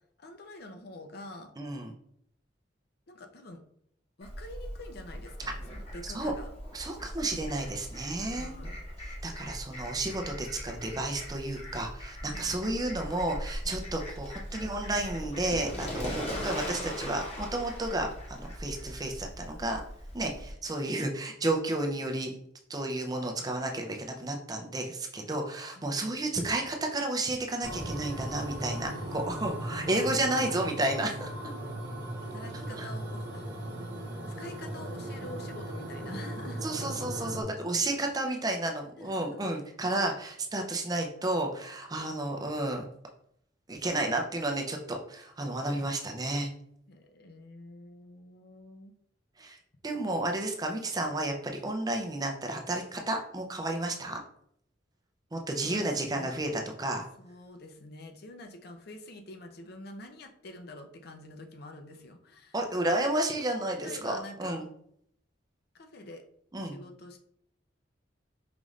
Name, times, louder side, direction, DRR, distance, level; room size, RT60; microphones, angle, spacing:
voice 1, 0.2-1.5 3.1-3.6 4.2-6.5 8.3-8.8 12.2-12.5 13.6-14.0 25.2-25.4 25.8-25.9 28.9-30.6 32.2-33.4 34.4-36.7 39.0-39.4 46.9-48.9 55.6-56.3 57.2-62.6 63.1-63.3 63.8-64.6 65.7-66.2 66.6-67.2, left 2 dB, 55° left, 5 dB, 0.5 m, -47 dB
voice 2, 1.6-1.9 6.0-6.3 6.7-8.5 9.2-19.8 20.1-22.3 22.7-31.3 32.7-32.9 36.6-42.9 43.7-46.5 49.4-49.6 49.8-54.2 55.3-57.1 62.5-64.7 66.5-66.8, right 2 dB, 20° right, 3 dB, 0.4 m, -32 dB
Fowl, 4.2-20.5, equal, 30° left, 0.9 m, -40 dB
sound 1, 27.6-37.4, right 1 dB, 65° right, 0.8 m, -38 dB
5.0 x 2.5 x 3.1 m, 0.70 s
head